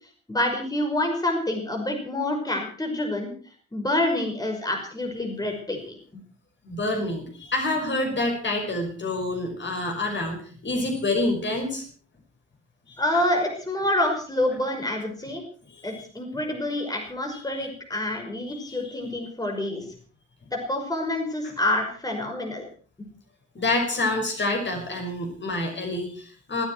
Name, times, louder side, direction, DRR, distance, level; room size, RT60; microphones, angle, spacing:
voice 1, 0.3-3.3 3.7-6.0 13.0-15.4 15.8-19.8 20.5-22.6, left 1 dB, 10° left, 2 dB, 5.4 m, -27 dB
voice 2, 6.6-11.8 12.9-13.0 15.7-16.0 18.5-19.0 23.5-26.6, left 2 dB, 30° left, 3 dB, 5.7 m, -27 dB
18.5 x 17.0 x 4.6 m, 0.42 s
figure-of-eight pair, 50°, 35 cm